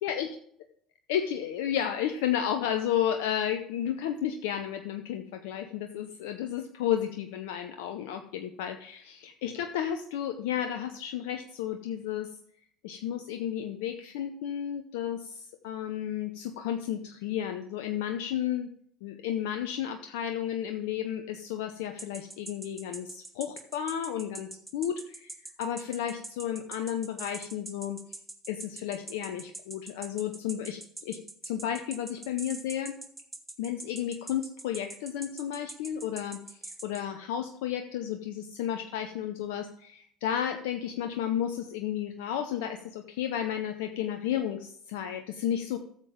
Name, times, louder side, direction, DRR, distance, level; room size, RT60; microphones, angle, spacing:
voice 1, 0.0-0.4 1.1-12.3 12.8-18.7 19.0-28.0 28.5-31.2 31.4-33.0 33.6-45.8, left 10 dB, 70° left, 7 dB, 0.7 m, -32 dB
sound 1, 22.0-37.0, right 2 dB, 10° right, 1.6 m, -42 dB
13.5 x 7.4 x 3.7 m, 0.66 s
hypercardioid pair, 65°, 0 cm